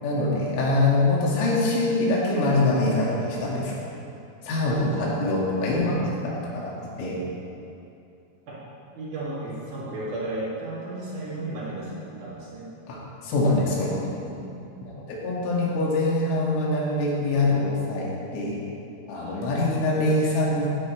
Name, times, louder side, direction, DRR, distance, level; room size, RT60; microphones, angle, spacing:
voice 1, 0.0-3.7 4.4-7.2 12.9-14.0 15.1-18.6 19.1-20.7, left 2 dB, 80° left, -5 dB, 4.5 m, -24 dB
voice 2, 8.9-12.7 14.2-14.5 19.1-19.5, right 2 dB, 50° right, -7 dB, 2.9 m, -34 dB
16.0 x 9.0 x 3.2 m, 2.7 s
omnidirectional pair, 5.8 m